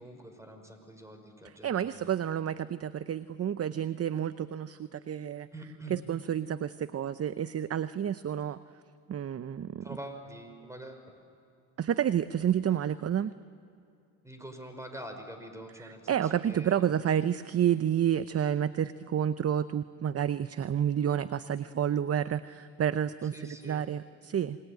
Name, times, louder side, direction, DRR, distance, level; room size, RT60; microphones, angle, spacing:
voice 1, 0.0-2.2 5.5-6.0 9.8-11.1 14.2-16.8 23.3-23.9, right 1 dB, 5° right, 6 dB, 5.5 m, -45 dB
voice 2, 1.4-5.5 5.9-8.6 9.1-9.9 11.8-13.3 15.8-23.3 23.6-24.6, right 9 dB, 35° right, 14 dB, 0.7 m, -30 dB
28.5 x 20.5 x 9.3 m, 2.6 s
supercardioid pair, 75°, 44 cm